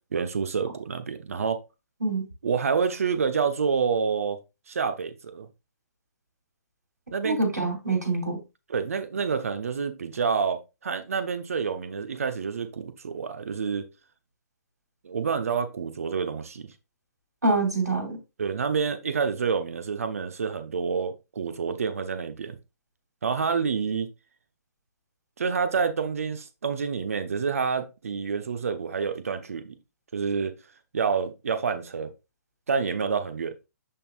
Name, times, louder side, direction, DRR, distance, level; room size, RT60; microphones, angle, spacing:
voice 1, 0.1-1.6 2.4-4.4 4.7-5.5 7.1-7.4 8.7-13.9 15.0-16.7 18.4-22.6 23.2-24.1 25.4-29.8 30.1-30.5 30.9-32.1 32.7-33.5, right 6 dB, 55° right, 0.9 m, -28 dB
voice 2, 7.2-8.4 17.4-18.2, right 2 dB, 75° right, 3.2 m, -25 dB
11.0 x 3.8 x 2.5 m
figure-of-eight pair, 130°, 9 cm